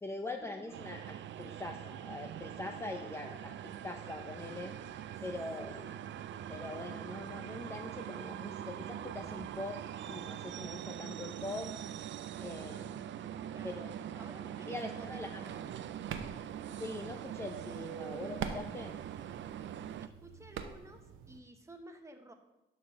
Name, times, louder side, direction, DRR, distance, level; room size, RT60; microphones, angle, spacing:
voice 1, 0.0-5.8 6.5-11.7 12.4-13.1 13.6-14.2 14.7-15.5 16.8-19.0, left 2 dB, 10° left, 4 dB, 0.5 m, -43 dB
sound 1, 0.7-20.1, right 10 dB, 65° right, 0.5 m, -43 dB
voice 2, 5.6-6.0 13.5-15.8 20.0-22.3, right 1 dB, 15° right, 5 dB, 1.1 m, -54 dB
sound 2, 15.4-21.4, right 7 dB, 85° right, 0.8 m, -46 dB
11.5 x 4.1 x 6.4 m, 0.98 s
cardioid pair, 125°, 21 cm